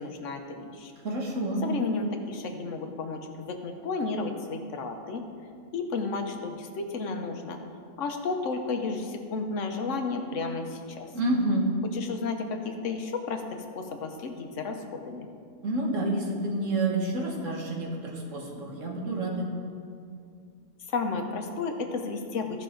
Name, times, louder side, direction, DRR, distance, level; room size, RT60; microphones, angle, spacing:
voice 1, 0.0-0.9 1.6-5.3 5.7-7.6 8.0-11.1 11.9-15.3 20.9-22.6, left 4 dB, 70° left, 5 dB, 1.2 m, -32 dB
voice 2, 1.0-1.6 11.1-11.7 15.6-19.5, right 2 dB, 70° right, -1 dB, 1.8 m, -28 dB
16.0 x 5.7 x 3.8 m, 2.3 s
omnidirectional pair, 1.4 m